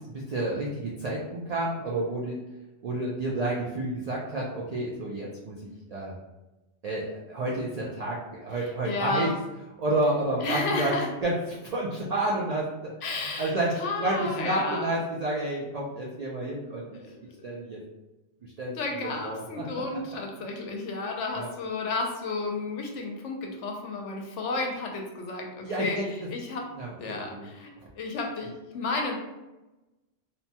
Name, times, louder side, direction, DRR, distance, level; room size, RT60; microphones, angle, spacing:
voice 1, 0.0-2.4 2.8-6.2 6.8-9.3 9.8-10.9 11.2-12.9 13.4-17.0 17.4-17.8 18.4-19.7 21.3-21.5 25.6-26.1 26.7-27.5, right 1 dB, 80° right, -4 dB, 0.3 m, -30 dB
voice 2, 8.8-9.4 10.4-11.1 13.0-14.9 16.9-17.2 18.7-26.0 26.3-26.6 27.0-29.2, left 3 dB, 80° left, 1 dB, 0.9 m, -32 dB
2.9 x 2.1 x 2.7 m, 1.0 s
omnidirectional pair, 1.2 m